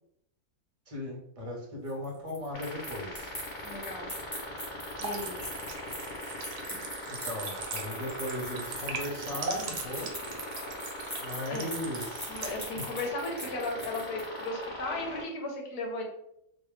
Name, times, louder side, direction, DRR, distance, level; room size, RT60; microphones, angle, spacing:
voice 1, 0.9-3.3 7.1-10.1 11.2-12.4 12.8-12.9, left 1 dB, 35° right, -2 dB, 0.5 m, -37 dB
sound 1, 1.9-14.5, equal, 15° left, 0.8 m, -42 dB
sound 2, 2.5-15.2, left 1 dB, 50° left, 0.6 m, -41 dB
voice 2, 3.6-4.1 5.0-5.4 11.5-11.7 12.3-16.1, left 2 dB, 80° left, 0 dB, 1.4 m, -36 dB
sound 3, 5.0-12.6, right 4 dB, 80° right, 1.1 m, -40 dB
3.3 x 2.3 x 3.1 m, 0.78 s
omnidirectional pair, 1.6 m